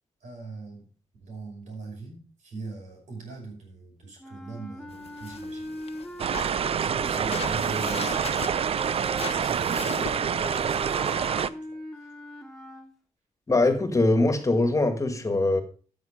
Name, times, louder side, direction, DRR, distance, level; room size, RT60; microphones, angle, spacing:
voice 1, 0.2-0.9 1.2-5.8 6.7-8.8 9.1-11.5 12.0-12.1, right 4 dB, 80° right, 5.6 m, -41 dB
sound 1, 4.2-12.9, left 1 dB, ahead, 1.9 m, -41 dB
sound 2, 4.9-11.1, left 6 dB, 55° left, 1.2 m, -40 dB
sound 3, 6.2-11.5, right 7 dB, 55° right, 0.5 m, -27 dB
voice 2, 13.5-15.6, left 2 dB, 25° left, 1.7 m, -22 dB
13.0 x 6.4 x 5.0 m
cardioid pair, 90°, 12 cm